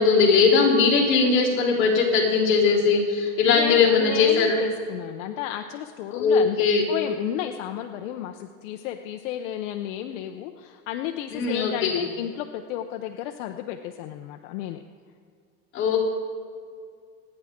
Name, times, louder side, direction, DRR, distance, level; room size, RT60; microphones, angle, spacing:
voice 1, 0.0-4.6 6.1-6.8 11.3-12.0 15.7-16.0, left 5 dB, 30° left, -6 dB, 3.4 m, -20 dB
voice 2, 3.4-6.6 6.9-14.8, left 11 dB, 60° left, 5 dB, 0.8 m, -33 dB
27.0 x 9.9 x 3.7 m, 2.1 s
supercardioid pair, 175°, 42 cm